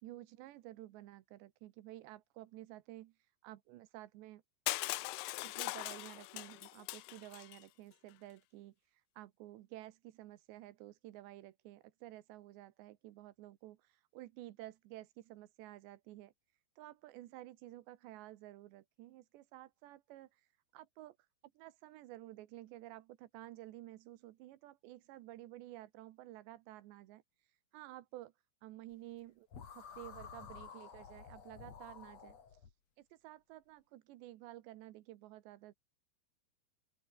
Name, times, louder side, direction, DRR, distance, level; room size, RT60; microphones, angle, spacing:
voice 1, 0.0-3.1 3.4-4.4 5.4-8.7 9.2-16.3 16.8-20.4 20.7-21.2 21.5-27.2 27.7-28.3 28.6-29.5 29.7-32.4 33.0-35.7, right 15 dB, 90° right, 3.3 m, -52 dB
Crushing, 4.7-7.6, left 22 dB, 85° left, 2.3 m, -40 dB
sound 1, 29.5-32.7, left 6 dB, 40° left, 3.4 m, -52 dB
open air
omnidirectional pair, 5.0 m